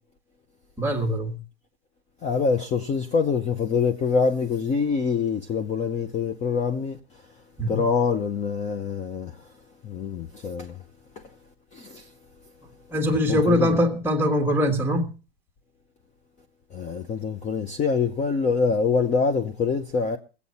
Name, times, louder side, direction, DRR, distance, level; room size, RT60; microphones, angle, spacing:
voice 1, 0.8-1.4 7.6-7.9 12.9-15.1, equal, 5° right, 1.5 m, -22 dB
voice 2, 2.2-7.0 7.7-9.3 9.8-10.8 11.7-12.0 13.3-13.8 16.7-20.2, left 5 dB, 20° left, 0.8 m, -25 dB
21.0 x 8.5 x 4.2 m
hypercardioid pair, 135°, 32 cm